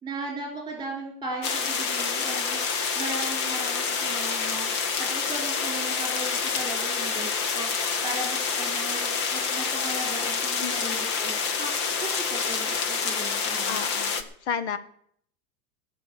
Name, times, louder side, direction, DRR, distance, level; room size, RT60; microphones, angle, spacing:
voice 1, 0.0-2.6 2.9-4.7 5.0-7.7 8.0-11.7 12.0-13.8, right 2 dB, 10° right, 1 dB, 3.5 m, -37 dB
sound 1, 1.4-14.2, left 5 dB, 20° left, 0.4 m, -27 dB
voice 2, 10.6-11.0 13.6-14.8, left 6 dB, 45° left, 14 dB, 0.9 m, -32 dB
17.5 x 6.2 x 8.2 m, 0.65 s
supercardioid pair, 170°, 45 cm